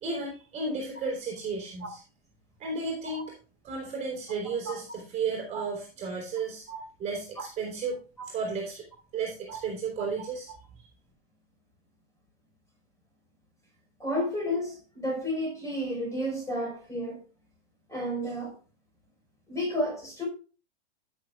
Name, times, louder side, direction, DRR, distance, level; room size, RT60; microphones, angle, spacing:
voice 1, 0.0-2.0 2.6-3.3 3.6-6.6 7.0-8.0 8.3-8.8 9.1-10.5 10.7-10.8, right 4 dB, 20° right, 3.3 m, -33 dB
voice 2, 14.0-17.2 17.9-18.5 19.5-20.3, equal, 10° left, 4.5 m, -31 dB
14.5 x 6.5 x 2.3 m
figure-of-eight pair, 100°, 32 cm